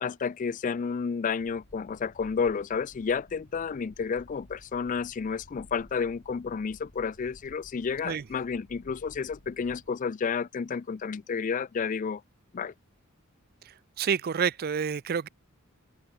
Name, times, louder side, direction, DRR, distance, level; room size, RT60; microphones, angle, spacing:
voice 1, 0.0-12.2 12.5-12.7, left 6 dB, 35° left, 0.3 m, -31 dB
sound 1, 1.4-9.9, left 1 dB, 70° left, 3.2 m, -55 dB
voice 2, 14.0-15.3, right 7 dB, 45° right, 0.4 m, -28 dB
head